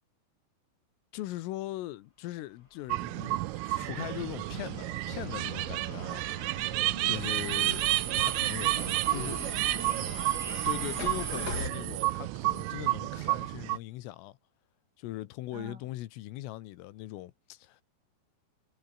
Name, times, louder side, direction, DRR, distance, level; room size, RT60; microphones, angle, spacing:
voice 1, 1.1-6.3 7.1-7.8 8.2-9.4 10.7-14.4 15.0-17.8, left 16 dB, 80° left, 3.8 m, -40 dB
sound 1, 2.8-11.7, left 3 dB, 20° left, 4.7 m, -43 dB
sound 2, 2.9-13.8, right 20 dB, 85° right, 3.3 m, -31 dB
voice 2, 6.9-7.4 9.1-10.5 15.5-15.8, right 5 dB, 70° right, 9.4 m, -44 dB
omnidirectional pair, 5.9 m